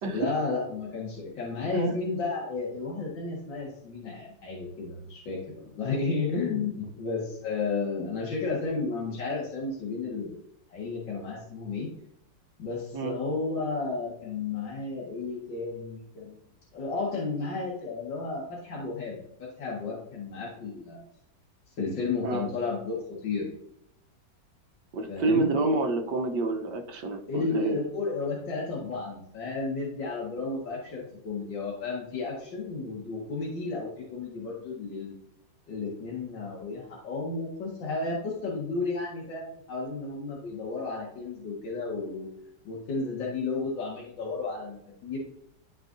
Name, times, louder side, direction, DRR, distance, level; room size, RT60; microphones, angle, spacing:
voice 1, 0.1-10.4 10.7-11.9 12.6-16.4 16.7-21.0 21.8-23.5 25.1-25.5 27.3-35.1 35.7-42.3 42.6-44.8 45.0-45.2, left 3 dB, 85° left, -4 dB, 2.4 m, -32 dB
voice 2, 24.9-27.8, right 3 dB, 70° right, 3 dB, 1.5 m, -28 dB
12.5 x 4.5 x 2.6 m, 0.73 s
omnidirectional pair, 2.0 m